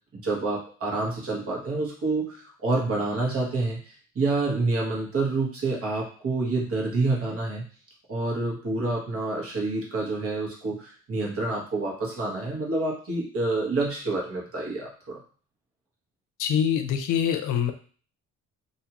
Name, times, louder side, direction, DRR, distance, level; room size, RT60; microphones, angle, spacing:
voice 1, 0.1-7.6 8.1-15.2, right 3 dB, 50° right, -3 dB, 1.2 m, -28 dB
voice 2, 16.4-17.7, left 8 dB, 80° left, 7 dB, 0.5 m, -24 dB
2.7 x 2.4 x 2.9 m, 0.41 s
cardioid pair, 90°, 30 cm